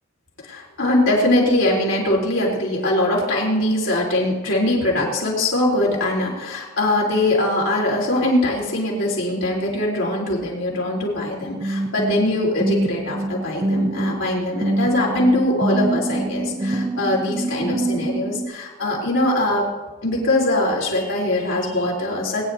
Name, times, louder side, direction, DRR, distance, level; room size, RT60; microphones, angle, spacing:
voice 1, 0.4-19.7 20.0-22.4, left 1 dB, 70° left, -2 dB, 3.8 m, -22 dB
sound 1, 11.6-18.5, right 1 dB, 25° right, 0.8 m, -25 dB
21.0 x 10.5 x 2.8 m, 1.2 s
head